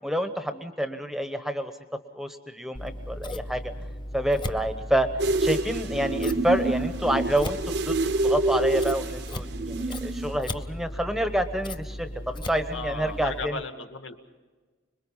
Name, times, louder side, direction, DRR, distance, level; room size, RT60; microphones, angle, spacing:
voice 1, 0.0-1.7 2.1-3.7 4.1-5.1 5.4-13.6, right 1 dB, ahead, 8 dB, 1.0 m, -28 dB
Scissors, 2.7-13.4, left 1 dB, 25° left, 0.7 m, -37 dB
sound 1, 5.2-10.4, right 2 dB, 60° right, 0.9 m, -27 dB
voice 2, 12.7-14.2, left 3 dB, 80° left, 6 dB, 1.7 m, -35 dB
26.5 x 22.0 x 5.6 m, 1.3 s
head